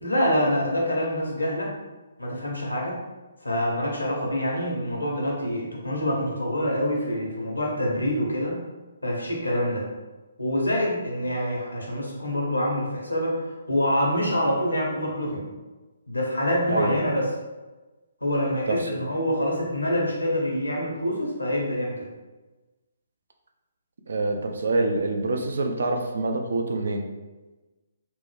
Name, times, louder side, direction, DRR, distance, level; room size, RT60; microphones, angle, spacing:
voice 1, 0.0-1.7 2.2-3.0 3.4-8.6 9.0-9.8 10.4-13.4 13.7-15.5 16.1-17.3 18.2-22.1, equal, 85° left, -2 dB, 0.9 m, -26 dB
voice 2, 18.7-19.0 24.1-27.0, right 2 dB, 65° right, 3 dB, 0.4 m, -26 dB
3.1 x 2.0 x 3.3 m, 1.2 s
figure-of-eight pair, 135°, 0 cm